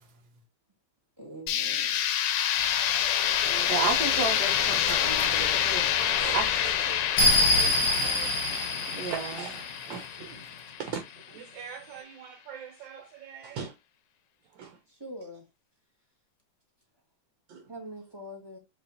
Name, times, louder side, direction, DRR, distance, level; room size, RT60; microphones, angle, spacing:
voice 1, 1.2-2.0 14.9-15.4 17.7-18.6, equal, 15° right, 1.3 m, -43 dB
sound 1, 1.5-11.2, left 10 dB, 75° left, 1.2 m, -27 dB
sound 2, 2.6-10.0, left 1 dB, 50° left, 1.3 m, -29 dB
voice 2, 3.4-5.9 6.3-6.5 8.9-9.2, right 5 dB, 60° right, 1.5 m, -32 dB
voice 3, 5.8-10.4 10.8-13.7 14.5-14.8 17.5-17.7, right 7 dB, 85° right, 1.5 m, -42 dB
5.0 x 3.3 x 2.7 m
omnidirectional pair, 2.0 m